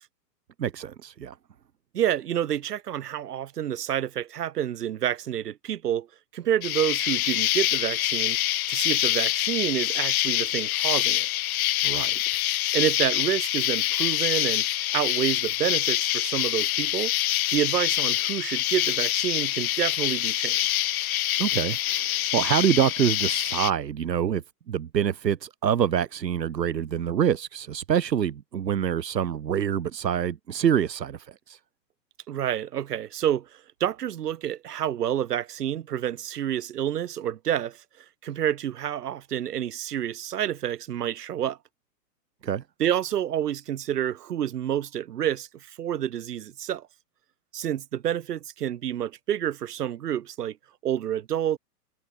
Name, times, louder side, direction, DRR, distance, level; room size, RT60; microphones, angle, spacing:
voice 1, 0.6-1.4 11.8-12.2 21.4-31.6 42.4-42.6, right 9 dB, 85° right, 2.4 m, -26 dB
voice 2, 1.9-6.1 6.3-8.4 8.7-11.3 12.7-14.6 14.9-17.1 17.5-20.6 32.3-33.5 33.8-41.6 42.8-46.9 47.5-50.6 50.8-51.6, right 10 dB, 70° right, 5.1 m, -28 dB
Insect, 6.6-23.7, left 15 dB, 60° left, 0.9 m, -25 dB
hypercardioid pair, 140°, 48 cm